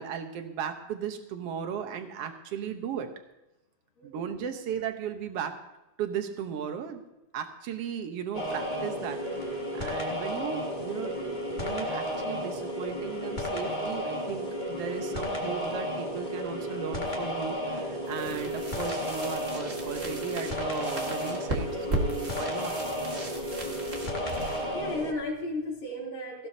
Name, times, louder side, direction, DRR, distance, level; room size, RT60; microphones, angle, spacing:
voice 1, 0.0-3.1 4.0-5.6 6.0-7.0 7.3-22.7, right 8 dB, 65° right, 7 dB, 1.5 m, -36 dB
sound 1, 8.3-25.1, equal, 20° left, 1.2 m, -33 dB
sound 2, 18.0-25.8, right 1 dB, 40° right, 0.9 m, -37 dB
voice 2, 23.7-24.0 24.7-26.5, left 2 dB, 75° left, -6 dB, 4.7 m, -35 dB
18.5 x 15.5 x 2.8 m, 0.95 s
omnidirectional pair, 4.0 m